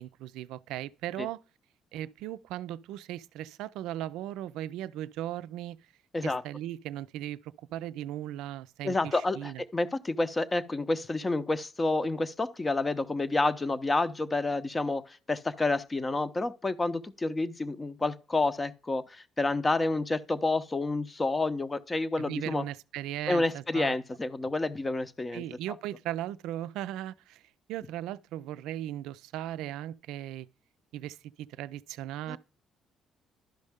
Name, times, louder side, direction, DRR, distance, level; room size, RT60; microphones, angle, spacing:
voice 1, 0.0-1.4 1.9-5.8 6.2-9.6 22.2-23.9 25.3-27.4 27.7-30.5 30.9-32.4, right 13 dB, 80° right, 0.3 m, -37 dB
voice 2, 8.8-22.6 23.3-25.4 32.3-32.4, left 2 dB, 25° left, 0.7 m, -29 dB
11.5 x 5.3 x 3.5 m
supercardioid pair, 65°, 0 cm